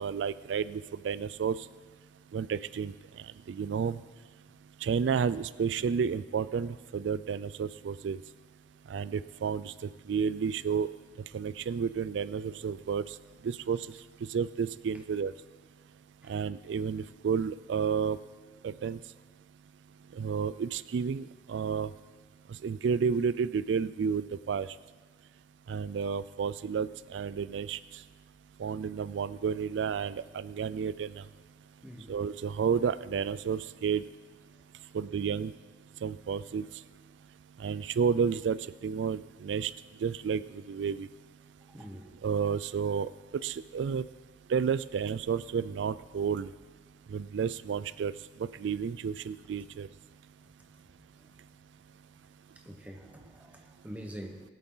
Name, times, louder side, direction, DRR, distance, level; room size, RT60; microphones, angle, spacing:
voice 1, 0.0-1.6 2.3-2.9 3.5-4.0 4.8-8.2 8.9-10.9 11.3-13.2 13.4-13.9 14.3-15.3 16.3-18.2 18.6-19.0 20.1-21.9 22.6-24.7 25.7-27.8 28.6-31.2 32.1-34.0 34.9-35.5 36.0-36.7 37.6-38.6 38.8-39.7 40.0-41.1 42.2-43.1 43.4-44.0 44.5-46.5 47.1-48.1 48.4-49.9, right 6 dB, 85° right, 17 dB, 0.3 m, -31 dB
voice 2, 41.7-42.1 52.6-54.4, equal, 10° right, 3 dB, 1.1 m, -45 dB
20.0 x 8.4 x 3.9 m, 1.4 s
head